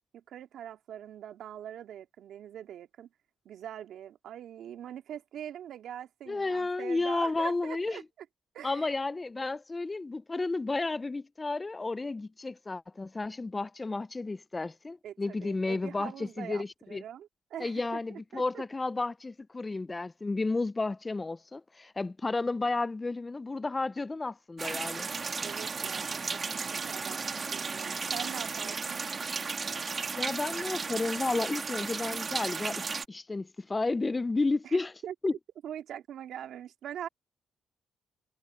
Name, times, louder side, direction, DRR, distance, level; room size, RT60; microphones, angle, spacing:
voice 1, 0.1-3.1 3.4-8.0 8.5-8.9 15.0-18.6 25.4-29.1 34.6-35.1 35.6-37.1, right 10 dB, 75° right, 2.7 m, -43 dB
voice 2, 6.3-8.0 8.6-16.1 16.4-17.0 17.6-25.1 30.1-32.8 33.1-34.9 35.2-35.3, left 3 dB, 20° left, 0.5 m, -32 dB
sound 1, 24.6-33.1, right 5 dB, 35° right, 1.9 m, -34 dB
cardioid pair, 90°, 0 cm